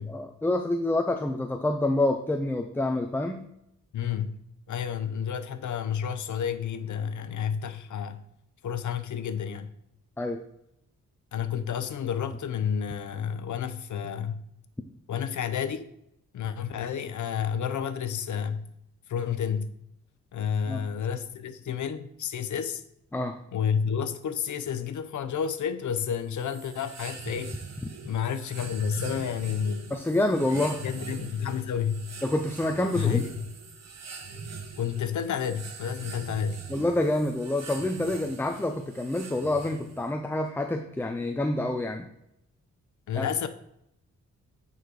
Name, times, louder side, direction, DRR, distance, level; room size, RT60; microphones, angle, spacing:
voice 1, 0.0-3.5 10.2-10.4 20.7-20.8 23.1-23.4 27.8-27.9 29.9-30.8 32.2-33.3 36.7-42.1 43.1-43.3, left 1 dB, 5° left, 0.4 m, -27 dB
voice 2, 3.9-8.2 8.6-9.7 11.3-14.4 15.1-15.9 16.3-18.6 19.1-19.7 20.3-22.8 23.5-27.6 28.0-29.8 30.5-32.1 32.9-33.5 34.8-36.6 43.1-43.5, left 8 dB, 70° left, 0.7 m, -30 dB
sound 1, 26.3-40.1, right 4 dB, 55° right, 1.0 m, -42 dB
9.3 x 4.2 x 4.7 m
wide cardioid pair, 145°, 31 cm